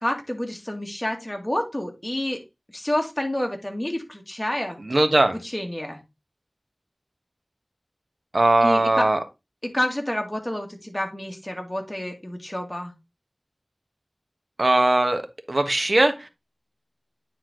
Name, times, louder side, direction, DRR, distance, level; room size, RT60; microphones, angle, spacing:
voice 1, 0.0-2.4 2.7-4.8 5.3-6.0 8.6-9.1 9.6-12.9, left 1 dB, 20° left, 3 dB, 2.3 m, -29 dB
voice 2, 4.9-5.4 8.3-9.2 14.6-15.2 15.5-16.3, right 2 dB, 60° right, 7 dB, 1.3 m, -19 dB
9.5 x 4.3 x 3.8 m, 0.23 s
wide cardioid pair, 45°, 0 cm